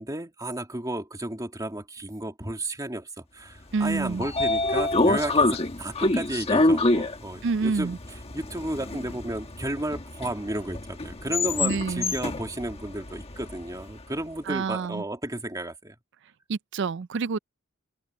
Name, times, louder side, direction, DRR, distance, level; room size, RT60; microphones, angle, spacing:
voice 1, 0.0-8.0 8.3-16.0, right 1 dB, 15° right, 2.5 m, -33 dB
voice 2, 3.7-4.3 7.4-8.0 11.6-12.1 14.5-15.0 16.5-17.4, right 4 dB, 60° right, 0.4 m, -27 dB
Train / Sliding door, 3.8-13.9, left 2 dB, 30° left, 1.3 m, -26 dB
head